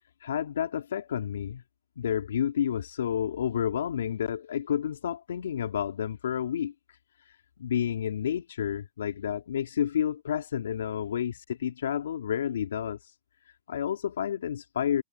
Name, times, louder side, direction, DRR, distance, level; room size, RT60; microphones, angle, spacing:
voice 1, 0.2-1.6 2.0-13.2 13.5-15.0, left 9 dB, 80° left, 3.9 m, -30 dB
hypercardioid pair, 135°, 0 cm